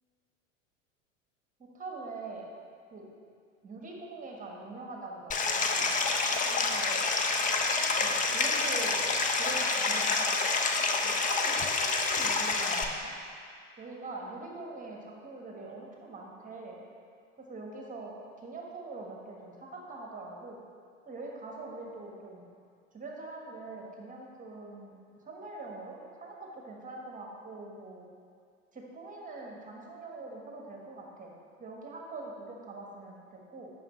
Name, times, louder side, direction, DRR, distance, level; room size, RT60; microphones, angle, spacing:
voice 1, 1.6-2.5 2.9-3.1 3.6-5.9 6.4-7.0 8.0-9.1 9.3-10.3 11.0-13.1 13.8-16.8 17.4-18.1 18.4-20.6 21.0-22.5 22.9-28.1 28.7-31.3 31.6-33.7, right 3 dB, 20° right, -1 dB, 1.4 m, -43 dB
Stream, 5.3-12.8, left 3 dB, 20° left, 0.6 m, -28 dB
9.1 x 6.5 x 3.2 m, 2.2 s
hypercardioid pair, 80°, 39 cm